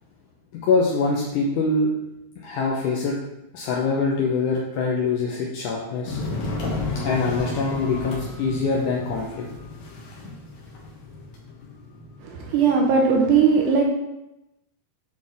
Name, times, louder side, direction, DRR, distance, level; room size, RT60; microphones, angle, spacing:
voice 1, 0.5-1.9 2.4-3.2 3.5-6.2 7.0-9.5, left 4 dB, 85° left, -2 dB, 1.8 m, -24 dB
sound 1, 6.1-12.9, left 3 dB, 65° left, 2.2 m, -33 dB
voice 2, 12.2-13.8, right 5 dB, 75° right, 0 dB, 1.9 m, -19 dB
7.6 x 4.2 x 3.5 m, 0.92 s
omnidirectional pair, 4.4 m